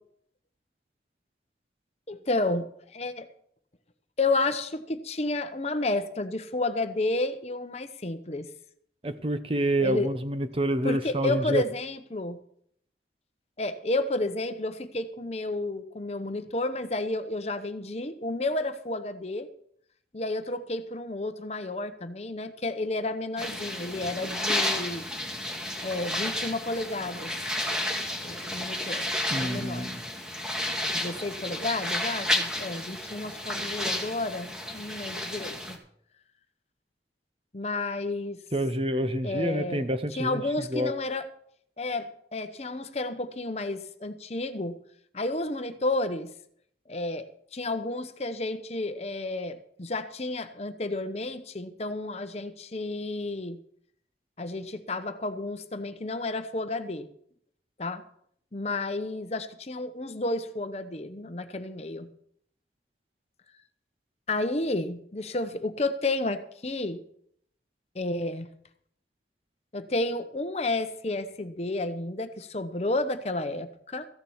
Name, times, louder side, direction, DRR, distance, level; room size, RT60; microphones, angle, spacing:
voice 1, 2.1-2.7 2.9-3.3 4.2-8.5 9.8-10.1 10.8-12.4 13.6-19.5 20.1-25.0 25.8-27.3 28.2-29.1 29.3-29.9 30.9-35.8 37.5-38.4 39.2-39.9 40.2-41.3 41.8-44.8 45.1-46.3 46.9-47.3 47.5-53.6 54.4-57.1 57.8-58.0 58.5-62.1 64.3-67.0 67.9-68.5 69.7-74.1, left 2 dB, 35° left, 10 dB, 0.8 m, -31 dB
voice 2, 9.0-11.6 29.3-30.0 38.5-40.9, right 1 dB, 30° right, 10 dB, 0.8 m, -28 dB
sound 1, 23.4-35.8, left 1 dB, 5° right, 1.7 m, -32 dB
14.5 x 7.3 x 7.2 m, 0.67 s
head